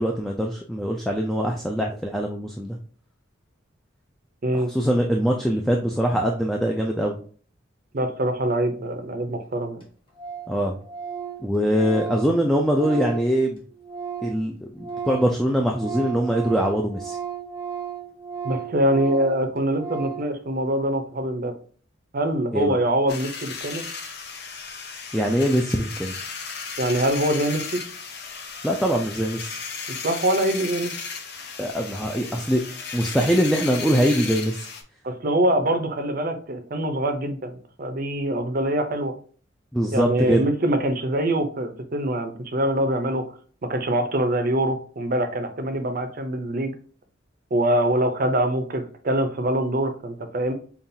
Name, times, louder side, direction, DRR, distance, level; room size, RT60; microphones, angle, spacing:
voice 1, 0.0-2.8 4.5-7.2 10.5-10.8 11.4-13.6 14.2-17.2 22.5-22.8 25.1-26.1 28.6-29.6 31.6-34.7 39.7-40.5, equal, ahead, 0 dB, 0.3 m, -23 dB
voice 2, 7.9-9.8 18.4-21.5 22.1-23.8 26.8-27.8 29.9-30.9 35.0-39.1 39.9-43.3 43.7-46.7 47.5-50.5, right 1 dB, 45° right, 7 dB, 0.6 m, -24 dB
Organ, 9.2-9.3 9.5-9.6 9.8-9.9 10.2-10.5 10.8-14.4 14.7-20.3, right 7 dB, 25° left, 1.1 m, -35 dB
sound 1, 23.1-34.8, left 5 dB, 55° left, 0.6 m, -35 dB
5.4 x 2.4 x 2.7 m, 0.43 s
head